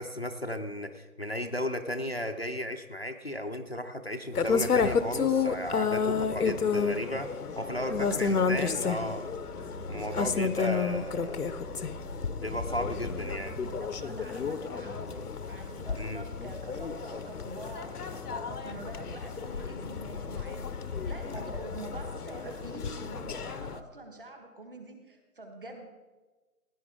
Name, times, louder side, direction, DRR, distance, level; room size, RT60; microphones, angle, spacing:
voice 1, 0.0-7.3 7.6-9.3 9.9-11.4 12.4-13.6 16.0-16.2, left 1 dB, 45° left, 6 dB, 0.5 m, -35 dB
sound 1, 4.3-23.8, left 5 dB, 85° left, 0.9 m, -31 dB
voice 2, 7.7-9.2 10.2-10.6 13.6-20.7 21.1-25.9, right 2 dB, 35° right, 4 dB, 1.6 m, -45 dB
sound 2, 7.9-13.8, right 2 dB, 55° right, 1.0 m, -44 dB
16.0 x 10.5 x 3.6 m, 1.2 s
hypercardioid pair, 180°, 45 cm